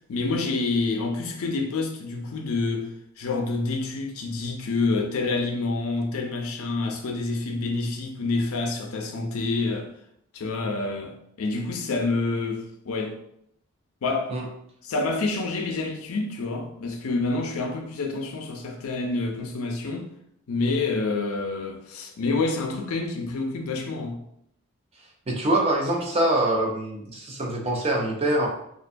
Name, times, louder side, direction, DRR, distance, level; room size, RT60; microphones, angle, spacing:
voice 1, 0.1-2.9 3.2-9.9 10.3-13.1 14.0-14.3 14.8-20.1 20.5-24.2, left 3 dB, 75° left, 0.4 m, -27 dB
voice 2, 25.3-28.5, right 1 dB, 25° right, 0.4 m, -24 dB
2.5 x 2.2 x 2.5 m
head